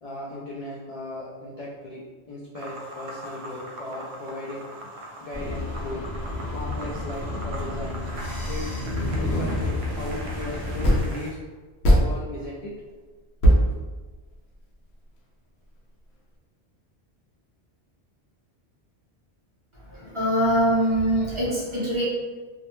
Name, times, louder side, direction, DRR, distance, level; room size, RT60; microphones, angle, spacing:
voice 1, 0.0-2.0 2.3-4.6 5.2-6.0 6.5-8.0 8.5-8.7 9.1-11.4 11.9-12.7, left 1 dB, 60° left, -6 dB, 0.4 m, -36 dB
sound 1, 2.5-11.3, right 1 dB, 75° right, 0.8 m, -41 dB
sound 2, 5.3-11.0, left 1 dB, 30° left, 0.9 m, -30 dB
sound 3, 10.8-11.3 11.8-12.5 12.9-13.0 13.4-14.6, equal, 75° left, 0.8 m, -19 dB
voice 2, 19.9-22.0, right 1 dB, 35° right, -8 dB, 0.6 m, -23 dB
2.4 x 2.1 x 2.9 m, 1.3 s
omnidirectional pair, 1.1 m